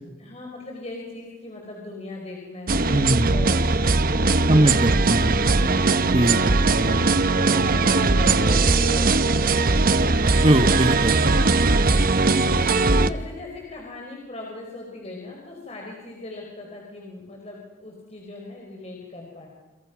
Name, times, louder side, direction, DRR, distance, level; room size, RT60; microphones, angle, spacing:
voice 1, 0.2-5.9 6.8-7.0 7.4-9.6 12.9-19.5, left 2 dB, 35° left, 0 dB, 5.1 m, -39 dB
sound 1, 2.7-13.1, right 3 dB, 50° right, 0.9 m, -20 dB
voice 2, 2.9-3.3 4.5-5.4 6.1-6.6 10.4-11.1, right 1 dB, 30° right, 9 dB, 1.2 m, -20 dB
29.5 x 29.0 x 6.3 m, 1.1 s
head